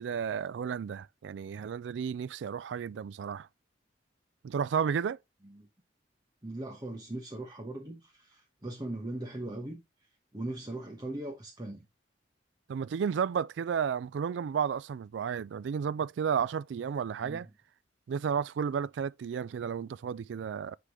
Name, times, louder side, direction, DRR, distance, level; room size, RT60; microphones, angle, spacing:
voice 1, 0.0-3.5 4.4-5.2 12.7-17.5 18.1-20.8, right 7 dB, 75° right, 0.3 m, -32 dB
voice 2, 6.4-11.9 17.2-17.4, right 1 dB, 20° right, 1.1 m, -40 dB
9.9 x 3.8 x 3.0 m
head